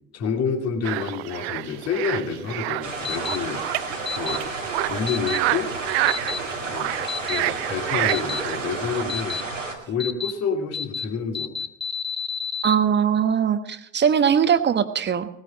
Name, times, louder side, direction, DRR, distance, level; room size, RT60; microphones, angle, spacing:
voice 1, 0.1-3.6 4.1-4.5 4.9-5.7 6.6-9.4 9.9-11.5, left 6 dB, 45° left, 3 dB, 3.0 m, -28 dB
sound 1, 0.8-9.0, right 19 dB, 60° right, 0.5 m, -28 dB
sound 2, 2.8-9.7, right 3 dB, 85° right, 2.3 m, -32 dB
sound 3, 3.0-3.4 4.1-4.4 5.1-5.4 6.1-6.4 7.1-7.4 8.1-8.4 9.1-9.4 10.0-10.3 10.7-11.0 11.3-12.7, left 6 dB, 15° left, 1.1 m, -29 dB
voice 2, 12.6-15.3, right 8 dB, 30° right, 11 dB, 1.3 m, -20 dB
19.0 x 9.5 x 5.3 m, 0.82 s
figure-of-eight pair, 60°, 37 cm